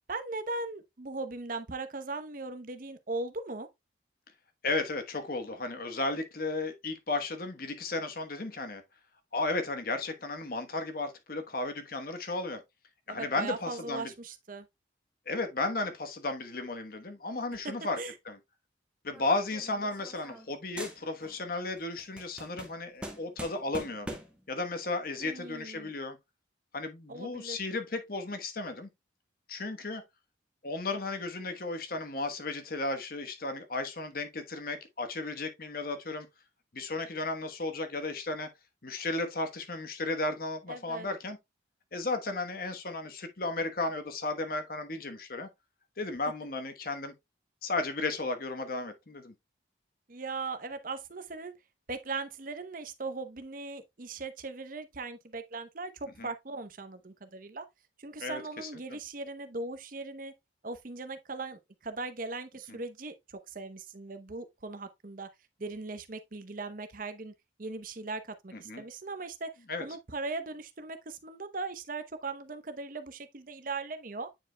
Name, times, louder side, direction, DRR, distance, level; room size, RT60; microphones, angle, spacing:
voice 1, 0.1-3.7 13.1-14.7 18.0-18.1 25.2-25.9 27.1-27.6 40.7-41.1 50.1-51.5 51.9-57.6 58.0-60.3 60.6-65.3 65.6-67.3 67.6-69.5 69.8-74.3, right 3 dB, 45° right, 0.8 m, -39 dB
voice 2, 4.6-8.8 9.3-12.6 13.1-14.1 15.3-18.0 18.2-18.4 19.0-24.1 24.5-26.2 26.7-28.9 29.5-30.0 30.6-36.3 36.7-38.5 38.8-41.4 41.9-45.5 46.0-47.1 47.6-49.3 56.2-56.3 58.2-59.0 62.7-62.8 68.7-68.8 69.7-69.8, left 2 dB, 50° left, 1.1 m, -34 dB
sound 1, 19.1-20.5 20.8-21.4 21.8-24.5, right 1 dB, 5° right, 1.0 m, -44 dB
8.9 x 4.9 x 2.2 m
head